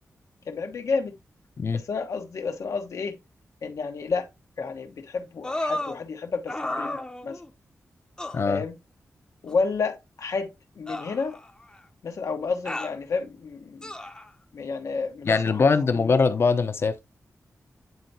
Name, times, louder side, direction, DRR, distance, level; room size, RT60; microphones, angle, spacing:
voice 1, 0.5-1.1 1.7-3.2 3.6-4.3 4.6-7.4 8.4-8.8 9.4-10.5 10.8-11.4 12.0-13.9 14.5-16.2, left 4 dB, 80° left, 1.2 m, -30 dB
sound 1, 5.4-6.0 6.5-7.5 8.2-8.4 9.5-9.6 10.9-11.8 12.7-13.0 13.8-14.3 15.3-15.4, left 1 dB, 15° left, 0.8 m, -33 dB
voice 2, 8.3-8.6 15.2-17.0, left 4 dB, 50° left, 0.8 m, -22 dB
9.5 x 4.5 x 2.8 m
wide cardioid pair, 150°, 5 cm